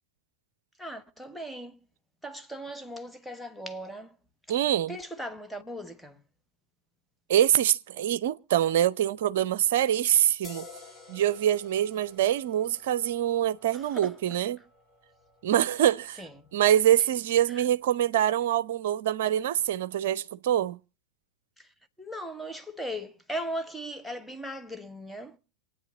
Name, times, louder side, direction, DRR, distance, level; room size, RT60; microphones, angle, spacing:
voice 1, 0.8-1.8 2.2-4.1 4.9-6.2 13.7-14.2 16.2-16.5 17.5-17.6 21.6-21.7 22.0-25.4, equal, ahead, 1.3 m, -38 dB
voice 2, 4.5-5.0 7.3-10.7 11.1-14.6 15.4-16.2 16.5-20.8, right 11 dB, 55° right, 0.6 m, -25 dB
sound 1, 10.4-17.7, left 4 dB, 15° left, 2.4 m, -53 dB
27.0 x 9.3 x 3.8 m
figure-of-eight pair, 90°, 0 cm